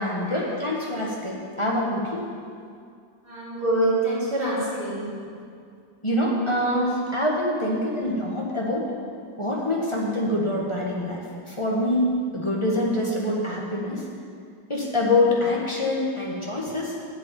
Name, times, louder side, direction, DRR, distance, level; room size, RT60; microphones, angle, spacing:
voice 1, 0.0-2.2 6.0-8.9 9.4-14.0 14.7-16.9, left 1 dB, 15° left, -3 dB, 1.3 m, -25 dB
voice 2, 3.2-5.1 7.8-8.0, right 1 dB, 55° right, -9 dB, 4.2 m, -25 dB
8.2 x 8.1 x 8.7 m, 2.3 s
omnidirectional pair, 2.1 m